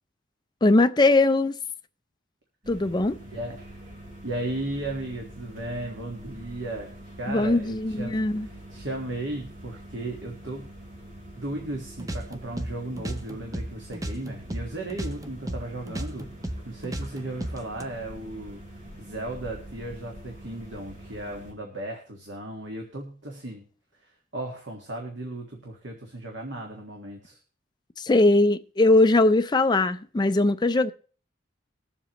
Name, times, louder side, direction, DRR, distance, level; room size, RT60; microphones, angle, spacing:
voice 1, 0.6-1.6 2.7-3.2 7.3-8.5 28.0-30.9, left 2 dB, 25° left, 0.5 m, -20 dB
sound 1, 2.6-21.5, right 1 dB, 45° right, 3.2 m, -45 dB
voice 2, 3.2-3.6 4.2-6.9 7.2-8.1 8.4-10.7 11.3-18.6 19.0-23.6 24.0-27.4, right 1 dB, 65° right, 1.6 m, -35 dB
sound 2, 12.0-14.7 14.9-17.8, right 1 dB, 20° right, 0.6 m, -34 dB
21.0 x 7.3 x 3.0 m
head